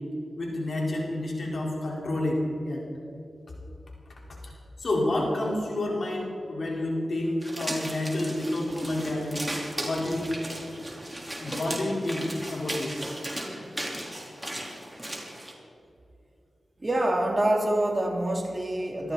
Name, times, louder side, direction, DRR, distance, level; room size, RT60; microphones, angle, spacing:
voice 1, 0.4-2.8 4.8-9.5 9.8-10.3 11.4-13.0, left 1 dB, 65° left, -2 dB, 4.3 m, -29 dB
sound 1, 7.4-15.5, right 1 dB, 10° right, 3.9 m, -36 dB
voice 2, 16.8-19.1, right 1 dB, 35° right, 1 dB, 2.9 m, -26 dB
22.0 x 14.0 x 4.2 m, 2.8 s
cardioid pair, 50°, 0 cm